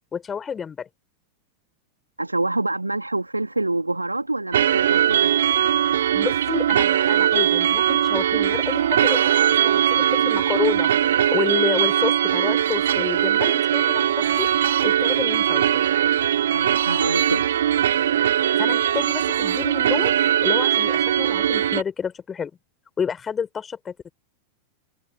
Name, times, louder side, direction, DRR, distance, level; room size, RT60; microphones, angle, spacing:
voice 1, 0.1-0.9 6.1-14.5 14.8-15.8 18.6-22.5 23.0-24.1, left 7 dB, 20° left, 5.2 m, -29 dB
voice 2, 2.2-5.3 16.5-17.5, right 2 dB, 85° right, 1.8 m, -26 dB
sound 1, 4.5-21.8, right 10 dB, 60° right, 3.3 m, -20 dB
figure-of-eight pair, 90°, 0 cm